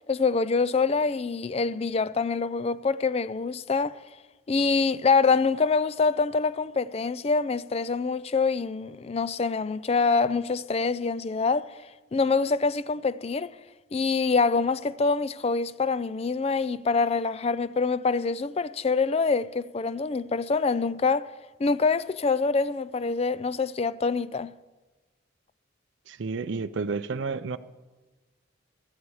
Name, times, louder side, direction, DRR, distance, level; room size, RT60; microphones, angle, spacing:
voice 1, 0.1-4.0 4.5-11.7 12.1-13.5 13.9-21.3 21.6-24.5, left 4 dB, 30° left, 0.4 m, -25 dB
voice 2, 26.1-27.6, right 4 dB, 65° right, 0.5 m, -31 dB
15.5 x 13.0 x 4.8 m
head